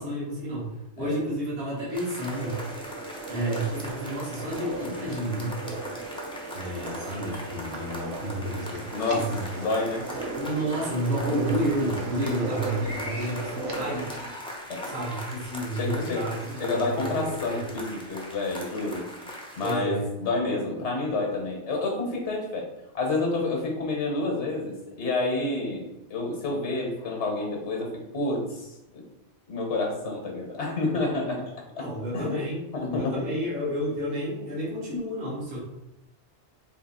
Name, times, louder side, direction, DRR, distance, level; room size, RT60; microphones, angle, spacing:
voice 1, 0.0-2.6 3.2-5.6 6.5-8.8 9.1-9.4 10.3-14.1 14.8-17.7 19.6-20.0 31.8-35.6, right 1 dB, 55° right, -6 dB, 1.5 m, -31 dB
sound 1, 1.9-19.7, left 1 dB, 5° left, 0.5 m, -40 dB
sound 2, 2.3-14.3, right 2 dB, 85° right, 1.0 m, -36 dB
voice 2, 8.9-9.3 9.5-10.1 12.2-12.5 14.7-14.9 15.7-16.3 16.6-19.1 19.6-22.7 22.9-29.0 29.5-31.5 31.8-31.9 32.1-32.4 32.7-33.2, left 2 dB, 75° left, 1 dB, 1.2 m, -29 dB
3.5 x 2.8 x 4.1 m, 0.90 s
omnidirectional pair, 1.2 m